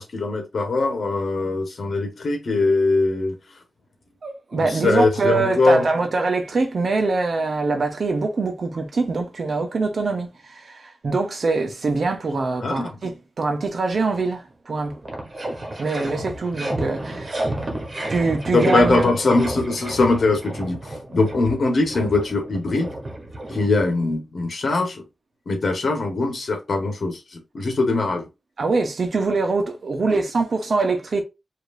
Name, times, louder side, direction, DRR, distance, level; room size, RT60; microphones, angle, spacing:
voice 1, 0.0-3.4 4.5-5.9 12.6-12.9 18.5-22.9 23.5-25.0 25.5-28.3 30.1-30.2, left 3 dB, 65° left, 1.7 m, -21 dB
voice 2, 4.2-15.0 15.8-17.4 18.1-19.1 28.6-31.2, right 3 dB, 60° right, 1.1 m, -23 dB
sound 1, 14.4-14.5 14.7-24.1, right 1 dB, 40° right, 1.4 m, -32 dB
5.1 x 3.0 x 2.8 m
wide cardioid pair, 140°, 0 cm